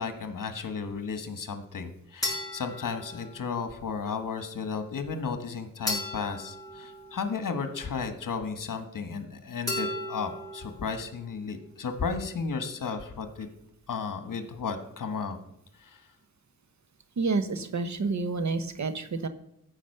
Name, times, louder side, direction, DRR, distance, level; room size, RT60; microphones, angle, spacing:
voice 1, 0.0-13.5 13.9-15.4 15.8-16.0, left 5 dB, 75° left, 8 dB, 1.5 m, -34 dB
sound 1, 2.2-3.7 5.9-7.7 9.7-10.8, left 1 dB, 10° left, 5.2 m, -35 dB
voice 2, 17.2-19.3, right 4 dB, 60° right, 11 dB, 1.0 m, -29 dB
13.5 x 5.2 x 6.7 m, 0.78 s
wide cardioid pair, 110°, 32 cm